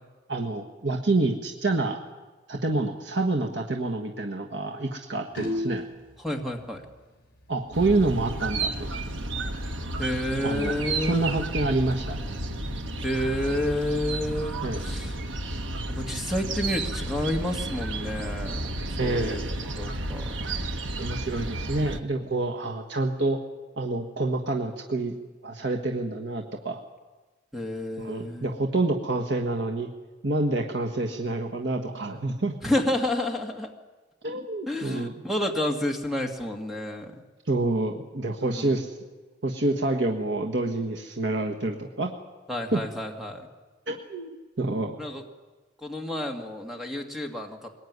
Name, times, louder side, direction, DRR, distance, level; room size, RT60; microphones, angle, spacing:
voice 1, 0.3-2.0 2.5-5.8 7.5-8.9 10.4-12.2 14.6-14.9 19.0-19.4 21.0-23.4 23.8-25.2 25.4-26.8 28.0-29.9 30.2-32.5 34.2-35.1 37.4-39.0 39.4-42.1 42.7-42.8 43.9-45.0, right 2 dB, 65° right, 2 dB, 1.6 m, -27 dB
sound 1, 5.3-6.1 7.8-7.9 8.1-8.3 8.7-8.8 9.2-9.3 10.2-10.9, left 1 dB, 50° left, 5.5 m, -32 dB
voice 2, 6.2-6.8 10.0-11.5 13.0-15.1 15.9-20.3 27.5-28.5 32.6-33.7 34.7-37.2 38.5-38.7 42.5-43.5 45.0-45.2 45.8-47.7, left 1 dB, ahead, 3 dB, 2.0 m, -30 dB
sound 2, 7.7-22.0, right 2 dB, 85° right, 1.5 m, -32 dB
22.5 x 20.0 x 9.6 m, 1.3 s
head